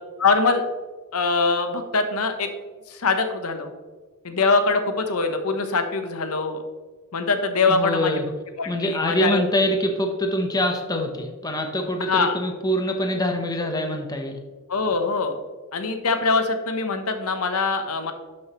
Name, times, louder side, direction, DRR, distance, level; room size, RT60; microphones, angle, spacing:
voice 1, 0.2-0.6 1.1-2.5 2.9-3.7 4.2-6.6 7.1-8.2 8.6-9.4 12.0-12.4 14.7-15.3 15.7-18.1, left 4 dB, 75° left, 7 dB, 0.9 m, -23 dB
voice 2, 7.7-8.2 8.7-14.4, left 1 dB, 20° left, 4 dB, 0.9 m, -24 dB
11.5 x 6.4 x 3.0 m, 1.3 s
head